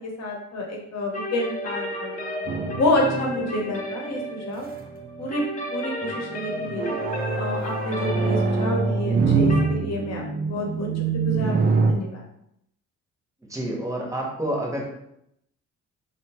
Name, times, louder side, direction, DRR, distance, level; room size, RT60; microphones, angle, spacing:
voice 1, 0.2-2.4 2.8-4.7 5.2-5.4 5.7-7.0 7.3-10.2 10.5-10.9 11.2-12.2, left 1 dB, 60° left, 0 dB, 0.8 m, -28 dB
sound 1, 1.1-9.7, left 1 dB, 25° left, 0.5 m, -33 dB
sound 2, 2.5-4.2 4.8-5.3 6.0-11.9, right 4 dB, 30° right, 0.4 m, -24 dB
voice 2, 13.5-14.8, right 1 dB, 10° right, -2 dB, 0.8 m, -28 dB
2.7 x 2.2 x 2.9 m, 0.76 s
cardioid pair, 90°, 30 cm